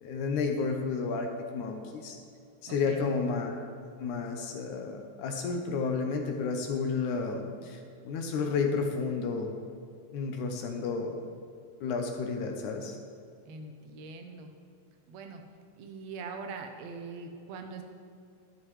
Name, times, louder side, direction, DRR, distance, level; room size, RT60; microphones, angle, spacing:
voice 1, 0.0-2.2 2.6-3.6 4.0-9.5 10.1-11.2 11.8-13.0, left 4 dB, 75° left, 3 dB, 1.9 m, -31 dB
voice 2, 2.7-3.1 13.4-14.5 15.1-15.4 15.8-17.8, right 4 dB, 75° right, 4 dB, 1.6 m, -42 dB
11.5 x 10.5 x 3.2 m, 2.4 s
omnidirectional pair, 4.1 m